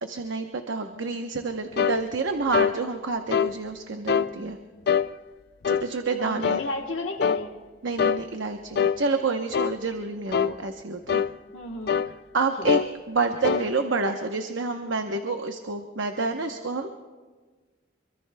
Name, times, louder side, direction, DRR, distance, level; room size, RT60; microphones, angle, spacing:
voice 1, 0.0-4.6 5.7-6.6 7.8-11.2 12.3-12.8 13.1-16.9, right 4 dB, 80° right, 5 dB, 0.9 m, -28 dB
sound 1, 1.8-2.0 2.5-2.8 3.3-3.5 4.1-4.3 4.9-5.1 5.6-5.9 6.4-6.7 7.2-7.4 8.0-8.2 8.8-9.0 9.5-9.8 10.3-10.6 11.1-11.3 11.9-12.1 12.7-12.9 13.4-13.7, left 7 dB, 55° left, 0.4 m, -23 dB
voice 2, 6.1-7.5 11.5-12.0 12.6-12.7, left 1 dB, 80° left, 0 dB, 1.2 m, -33 dB
26.0 x 24.5 x 2.2 m, 1.4 s
head